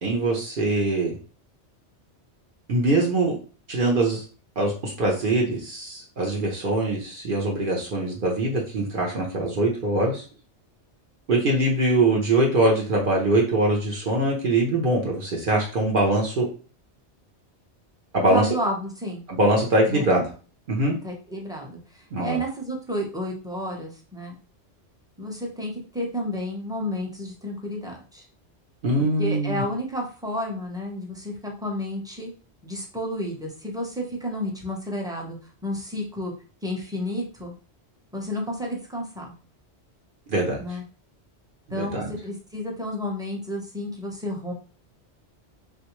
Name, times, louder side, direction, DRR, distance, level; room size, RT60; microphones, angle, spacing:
voice 1, 0.0-1.1 2.7-3.4 3.7-4.2 4.6-10.2 11.3-16.5 18.1-18.5 19.3-20.2 20.7-20.9 22.1-22.4 28.8-29.6 40.3-40.6 41.7-42.1, right 2 dB, 55° right, -1 dB, 0.8 m, -23 dB
voice 2, 18.3-19.2 19.9-20.1 21.0-24.3 25.2-28.3 29.2-32.3 32.6-35.4 35.6-36.3 36.6-37.5 38.1-39.3 40.6-40.8 41.7-44.5, equal, 5° right, -1 dB, 0.5 m, -31 dB
3.4 x 2.5 x 2.9 m, 0.38 s
omnidirectional pair, 1.2 m